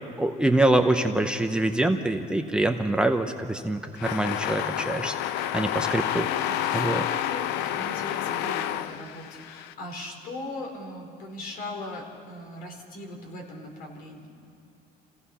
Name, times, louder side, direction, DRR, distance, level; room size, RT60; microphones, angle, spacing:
voice 1, 0.2-5.1 5.5-6.4 6.7-7.0, right 1 dB, 5° right, 5 dB, 0.8 m, -25 dB
sound 1, 4.0-9.7, left 11 dB, 85° left, 0.7 m, -29 dB
voice 2, 6.4-14.3, left 2 dB, 60° left, 1 dB, 4.3 m, -39 dB
28.0 x 16.5 x 5.7 m, 2.7 s
cardioid pair, 125°, 17 cm